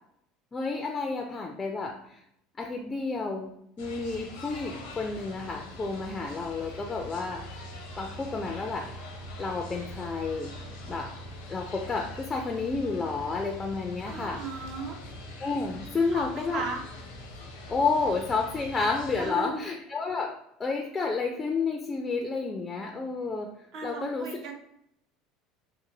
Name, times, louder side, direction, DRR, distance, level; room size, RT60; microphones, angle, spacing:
voice 1, 0.5-2.2 2.6-3.5 3.8-7.4 8.0-8.9 9.4-10.6 10.9-11.1 11.5-14.4 15.4-16.7 17.7-20.3 20.6-23.5 23.8-24.3, left 4 dB, 25° left, 2 dB, 0.3 m, -30 dB
sound 1, 3.8-19.3, left 1 dB, 85° left, 0.6 m, -43 dB
voice 2, 14.1-15.0 16.1-16.8 19.2-19.6 23.7-24.5, right 3 dB, 60° right, 2 dB, 0.5 m, -36 dB
2.6 x 2.5 x 2.7 m, 0.77 s
supercardioid pair, 95°, 0 cm